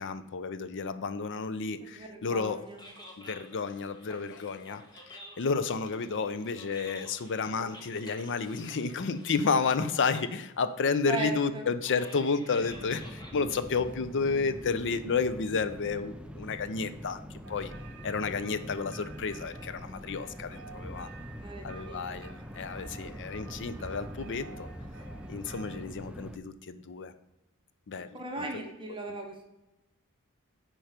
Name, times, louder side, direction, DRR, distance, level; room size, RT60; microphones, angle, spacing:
voice 1, 0.0-2.6 3.2-17.7 18.0-21.1 21.6-24.7 25.3-27.1 27.9-28.5, left 5 dB, 55° left, 12 dB, 0.5 m, -31 dB
voice 2, 1.9-2.8 11.1-11.6 21.4-22.2 28.1-29.5, right 3 dB, 25° right, 2 dB, 1.1 m, -37 dB
sound 1, 2.5-14.7, left 1 dB, 20° left, 1.4 m, -52 dB
sound 2, 12.6-26.4, equal, 5° right, 0.4 m, -44 dB
sound 3, 17.4-25.8, right 5 dB, 55° right, 0.8 m, -52 dB
8.8 x 4.5 x 5.1 m, 0.93 s
head